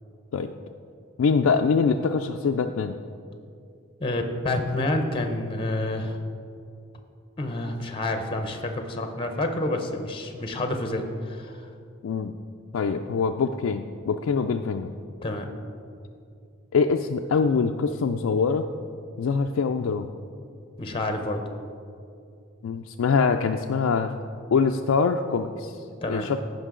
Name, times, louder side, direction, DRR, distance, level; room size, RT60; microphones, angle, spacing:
voice 1, 1.2-3.0 12.0-12.4 12.7-14.9 16.7-18.7 19.2-20.1 22.6-24.1 24.5-26.4, left 5 dB, 90° left, 4 dB, 0.4 m, -24 dB
voice 2, 4.0-6.2 7.4-11.7 15.2-15.5 20.8-21.4 26.0-26.3, left 2 dB, 25° left, 6 dB, 0.6 m, -28 dB
15.0 x 5.4 x 3.8 m, 2.4 s
head